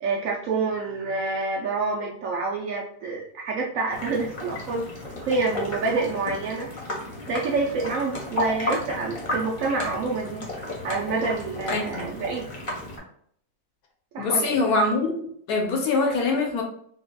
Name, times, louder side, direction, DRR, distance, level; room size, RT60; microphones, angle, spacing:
voice 1, 0.0-4.9 5.2-6.7 7.3-10.5 10.8-12.5 14.1-14.6, right 3 dB, 70° right, -2 dB, 0.8 m, -27 dB
sound 1, 3.9-13.0, left 1 dB, 35° left, 0.9 m, -33 dB
voice 2, 11.7-12.1 14.2-15.1 15.5-16.6, left 3 dB, 70° left, 1 dB, 1.2 m, -23 dB
4.7 x 2.3 x 2.2 m, 0.66 s
omnidirectional pair, 1.8 m